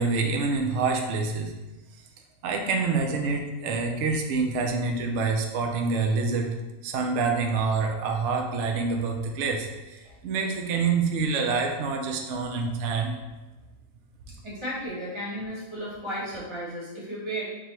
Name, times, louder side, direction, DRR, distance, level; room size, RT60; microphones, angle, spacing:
voice 1, 0.0-1.5 2.4-13.2, right 4 dB, 65° right, 3 dB, 0.7 m, -27 dB
voice 2, 14.4-17.5, equal, 20° right, -7 dB, 1.0 m, -34 dB
4.9 x 2.3 x 2.9 m, 1.1 s
omnidirectional pair, 1.5 m